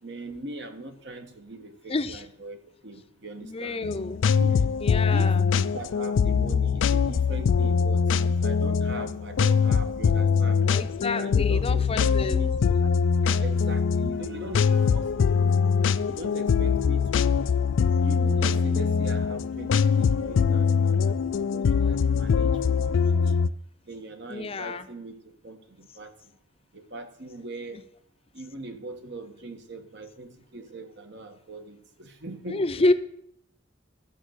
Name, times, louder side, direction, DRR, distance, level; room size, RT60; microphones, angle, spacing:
voice 1, 0.0-3.8 4.4-4.6 5.1-10.6 11.0-13.0 13.4-15.6 16.1-17.3 18.0-23.3 23.9-26.1 26.7-27.8 28.3-32.8, right 2 dB, 65° right, 6 dB, 1.4 m, -40 dB
voice 2, 1.9-2.2 3.4-4.2 4.8-5.4 10.7-12.4 24.3-24.9 27.7-27.8 32.5-32.9, left 2 dB, 30° left, 10 dB, 0.6 m, -28 dB
sound 1, 3.8-23.5, left 6 dB, 85° left, 0.4 m, -23 dB
13.0 x 6.4 x 6.4 m, 0.72 s
head